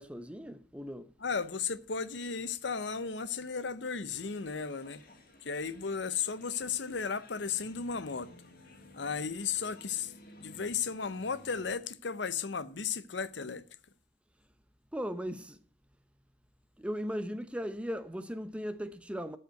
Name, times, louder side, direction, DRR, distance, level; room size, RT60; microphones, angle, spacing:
voice 1, 0.0-1.1 14.9-15.6 16.8-19.4, equal, 5° right, 0.8 m, -37 dB
voice 2, 1.2-5.0 5.4-8.3 8.9-10.1 10.4-13.6, left 6 dB, 75° left, 0.8 m, -35 dB
sound 1, 4.1-11.7, left 2 dB, 50° left, 2.4 m, -56 dB
13.0 x 5.5 x 6.4 m
head